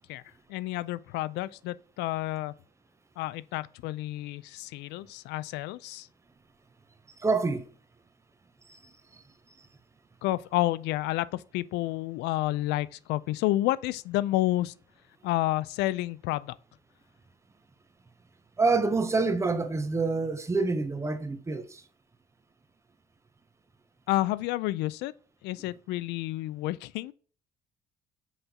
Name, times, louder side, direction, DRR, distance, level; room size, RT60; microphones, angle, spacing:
voice 1, 0.5-2.5 3.2-6.1 10.2-14.7 15.2-16.6 24.1-25.1 25.4-27.1, left 16 dB, 85° left, 0.4 m, -30 dB
voice 2, 7.2-7.7 8.7-9.2 18.6-21.8, right 3 dB, 15° right, 0.7 m, -27 dB
5.6 x 4.4 x 4.1 m
cardioid pair, 110°, 17 cm